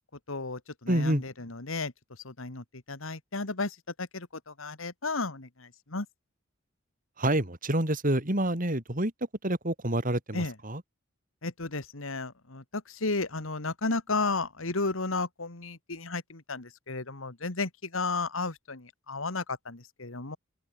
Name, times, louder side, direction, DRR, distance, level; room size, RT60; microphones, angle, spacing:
voice 1, 0.3-1.9 2.2-6.1 10.3-10.5 11.4-20.4, left 3 dB, 75° left, 2.1 m, -33 dB
voice 2, 0.9-1.2 7.2-9.1 9.4-10.8, right 1 dB, 40° right, 3.6 m, -27 dB
open air
head